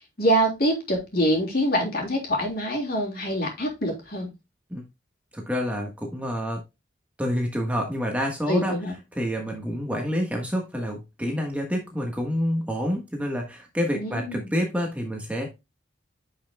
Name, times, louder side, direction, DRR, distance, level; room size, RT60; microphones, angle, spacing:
voice 1, 0.2-4.3 8.5-8.9 13.9-14.5, equal, 50° left, 0 dB, 3.3 m, -25 dB
voice 2, 5.3-6.6 7.2-8.8 9.1-15.5, equal, 5° right, 1 dB, 1.3 m, -28 dB
9.9 x 5.7 x 2.2 m, 0.23 s
head